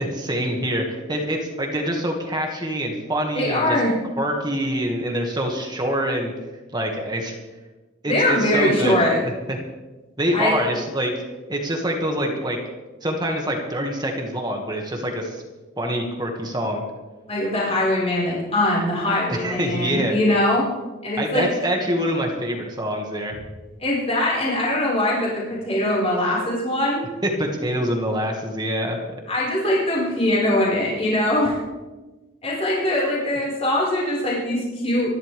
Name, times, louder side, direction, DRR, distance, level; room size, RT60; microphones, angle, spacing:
voice 1, 0.0-3.8 4.2-6.3 6.7-7.3 8.0-9.0 9.5-9.6 10.2-11.1 11.5-12.6 13.0-15.4 15.8-16.8 19.3-20.2 21.1-23.3 27.2-29.2, equal, 20° right, 2 dB, 2.0 m, -25 dB
voice 2, 3.3-4.0 8.1-9.2 10.3-10.6 17.3-20.7 21.0-21.5 23.8-27.0 29.3-31.6 32.4-35.1, left 1 dB, 30° left, -5 dB, 5.2 m, -22 dB
25.5 x 12.0 x 3.5 m, 1.2 s
head